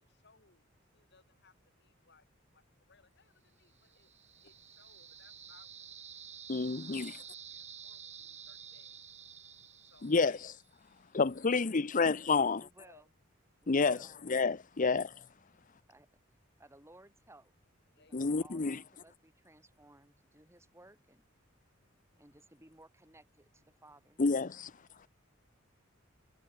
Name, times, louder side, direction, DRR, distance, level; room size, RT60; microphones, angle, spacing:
voice 1, 0.0-10.2 11.0-12.2 12.8-13.1 13.5-13.7 15.6-16.1 17.9-18.4 21.4-22.4, left 4 dB, 60° left, 7.0 m, -68 dB
sound 1, 3.8-10.7, right 8 dB, 35° right, 1.9 m, -51 dB
voice 2, 6.5-7.1 10.0-10.5 11.1-12.6 13.7-15.1 18.1-18.8 24.2-24.7, left 4 dB, 40° left, 0.7 m, -29 dB
voice 3, 12.4-13.1 13.6-14.2 15.9-16.1 16.6-17.5 17.8-21.2 22.2-24.2, right 1 dB, 15° right, 7.9 m, -60 dB
head